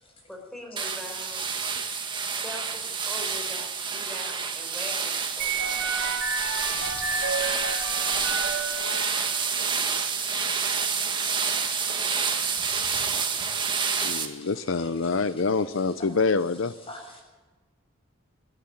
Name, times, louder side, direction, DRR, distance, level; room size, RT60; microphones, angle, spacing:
voice 1, 0.3-1.4 2.4-6.1, left 1 dB, ahead, 1 dB, 4.2 m, -42 dB
sound 1, 0.8-14.3, right 6 dB, 25° right, 1.8 m, -28 dB
sound 2, 5.4-9.5, right 4 dB, 60° right, 3.1 m, -31 dB
voice 2, 14.0-16.7, left 4 dB, 70° left, 12 dB, 0.7 m, -26 dB
voice 3, 16.9-17.2, left 2 dB, 25° left, 2 dB, 6.9 m, -47 dB
26.0 x 11.0 x 9.2 m, 1.3 s
head